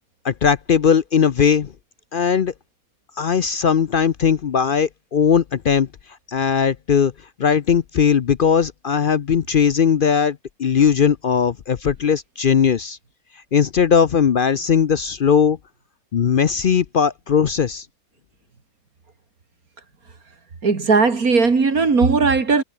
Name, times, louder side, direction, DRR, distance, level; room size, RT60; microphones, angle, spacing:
voice 1, 0.2-1.7 2.1-2.5 3.2-5.9 6.3-7.1 7.4-13.0 13.5-15.6 16.1-17.9, left 7 dB, 50° left, 0.6 m, -18 dB
voice 2, 20.6-22.6, right 4 dB, 80° right, 3.1 m, -17 dB
omnidirectional pair, 1.5 m